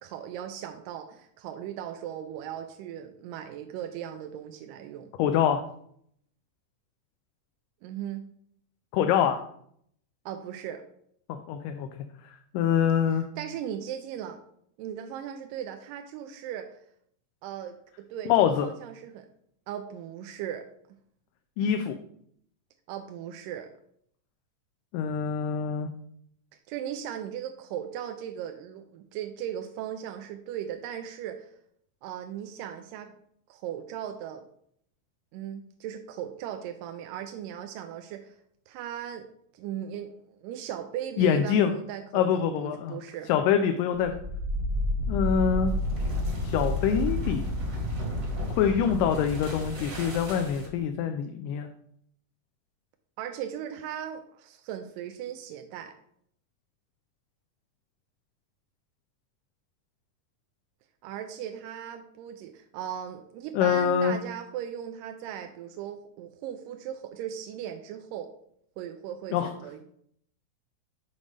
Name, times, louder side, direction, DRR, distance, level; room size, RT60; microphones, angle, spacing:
voice 1, 0.0-5.1 7.8-8.2 10.3-10.8 13.1-14.4 14.8-16.8 17.4-18.3 18.6-19.3 19.7-20.7 22.9-23.7 26.7-31.5 32.0-33.1 33.5-34.5 35.3-38.3 38.7-39.3 39.5-42.3 42.6-43.3 53.2-55.9 61.0-68.3 68.8-69.8, right 10 dB, 90° right, 6 dB, 2.2 m, -38 dB
voice 2, 5.2-5.6 8.9-9.4 11.3-12.0 12.5-13.3 18.3-18.7 21.6-21.9 24.9-25.9 41.2-41.7 42.1-43.0 43.3-44.2 45.1-45.7 46.4-47.4 48.6-51.7 63.5-64.1 69.3-69.5, left 8 dB, 85° left, 6 dB, 2.1 m, -25 dB
sound 1, 44.0-50.8, left 1 dB, 45° right, 1.3 m, -30 dB
7.1 x 5.2 x 3.3 m, 0.67 s
omnidirectional pair, 3.7 m